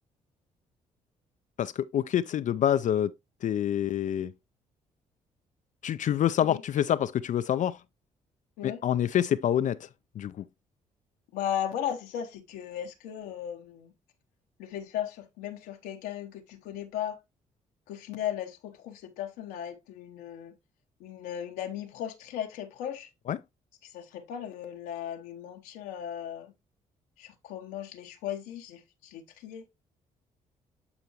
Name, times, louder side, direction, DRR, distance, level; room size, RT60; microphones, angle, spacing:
voice 1, 1.6-3.1 3.4-4.3 5.8-7.8 8.6-9.9 10.2-10.5 23.3-23.4, left 10 dB, 55° left, 0.4 m, -27 dB
voice 2, 11.3-13.9 14.6-17.2 17.9-20.5 21.0-23.1 23.8-26.5 27.2-29.7, left 10 dB, 85° left, 0.9 m, -36 dB
9.7 x 4.5 x 2.9 m
supercardioid pair, 55°, 15 cm